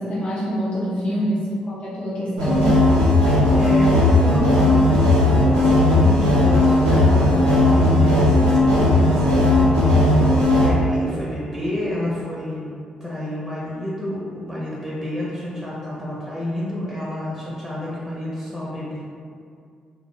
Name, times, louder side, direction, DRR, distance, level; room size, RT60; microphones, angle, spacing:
voice 1, 0.0-2.7, equal, 40° left, -8 dB, 0.6 m, -25 dB
voice 2, 1.0-1.4 3.2-9.8 10.6-19.0, left 1 dB, ahead, -7 dB, 0.7 m, -29 dB
sound 1, 2.4-10.7, left 1 dB, 85° right, 0.5 m, -16 dB
2.2 x 2.1 x 2.9 m, 2.2 s
hypercardioid pair, 40°, 3 cm